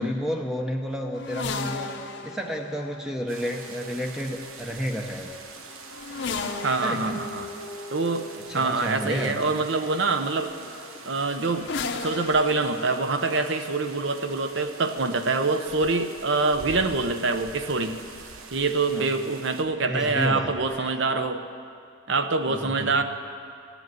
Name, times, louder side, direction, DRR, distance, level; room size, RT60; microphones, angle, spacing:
voice 1, 0.0-1.9 2.2-5.3 6.7-7.2 8.5-9.4 18.9-19.1 19.8-20.5 22.5-23.0, equal, 5° right, 2 dB, 0.6 m, -31 dB
sound 1, 1.1-18.9 20.0-20.9, left 4 dB, 55° left, 0.7 m, -38 dB
sound 2, 3.3-19.6, right 4 dB, 80° right, 1.0 m, -45 dB
voice 2, 6.6-7.5 7.9-8.3 8.5-10.5 11.0-11.7 12.0-18.0 18.5-21.4 22.1-23.0, right 3 dB, 55° right, 8 dB, 0.8 m, -25 dB
13.0 x 7.6 x 9.4 m, 2.3 s
head